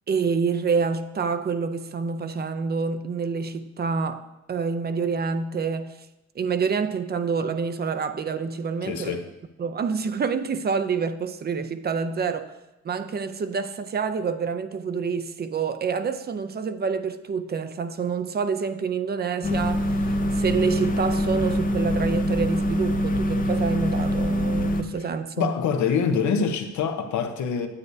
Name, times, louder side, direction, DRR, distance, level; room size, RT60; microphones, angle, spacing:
voice 1, 0.1-6.0 6.4-9.2 9.6-12.5 12.8-25.6, right 5 dB, 35° right, 0.5 m, -27 dB
voice 2, 8.8-9.3 25.4-27.7, left 6 dB, 75° left, 0.8 m, -25 dB
sound 1, 19.4-24.8, equal, 30° left, 0.6 m, -24 dB
9.7 x 8.1 x 2.7 m
cardioid pair, 90°, 30 cm